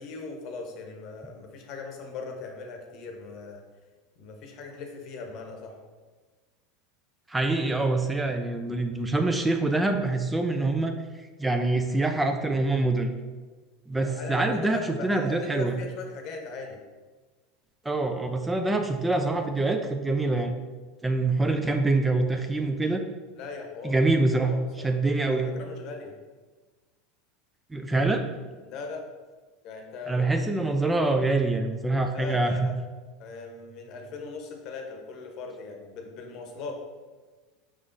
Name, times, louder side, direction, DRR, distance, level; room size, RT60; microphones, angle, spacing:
voice 1, 0.0-3.6 4.2-5.8 14.0-16.8 23.4-24.0 24.4-24.9 25.3-26.1 28.6-29.1 29.6-30.7 32.1-32.7 33.2-36.7, left 4 dB, 55° left, 3 dB, 0.8 m, -39 dB
voice 2, 7.3-11.0 11.4-13.1 13.9-15.8 17.8-20.6 21.0-23.0 23.8-25.5 27.7-28.2 30.1-32.7, right 2 dB, 10° right, 5 dB, 0.3 m, -25 dB
4.9 x 3.7 x 2.6 m, 1.3 s
hypercardioid pair, 100°, 0 cm